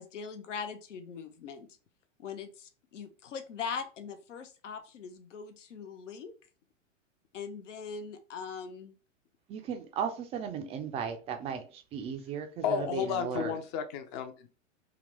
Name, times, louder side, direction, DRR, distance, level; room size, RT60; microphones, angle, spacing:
voice 1, 0.0-1.7 2.2-6.3 7.3-8.9, left 6 dB, 65° left, 0.7 m, -41 dB
voice 2, 9.5-13.6, right 7 dB, 15° right, 0.4 m, -36 dB
voice 3, 12.6-14.5, left 7 dB, 35° left, 0.7 m, -32 dB
3.9 x 2.9 x 3.1 m
figure-of-eight pair, 95°, 39 cm